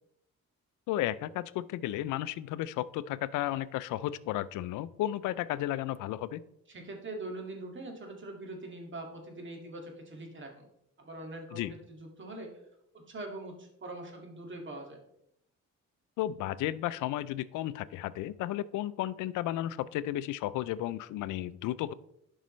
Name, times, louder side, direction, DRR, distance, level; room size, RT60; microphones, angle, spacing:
voice 1, 0.9-6.4 11.5-11.7 16.2-21.9, left 14 dB, 85° left, 17 dB, 0.5 m, -33 dB
voice 2, 6.7-10.6 11.0-12.6 12.9-15.0, right 2 dB, 40° right, 2 dB, 2.1 m, -43 dB
11.5 x 5.5 x 3.1 m, 0.79 s
cardioid pair, 90°, 30 cm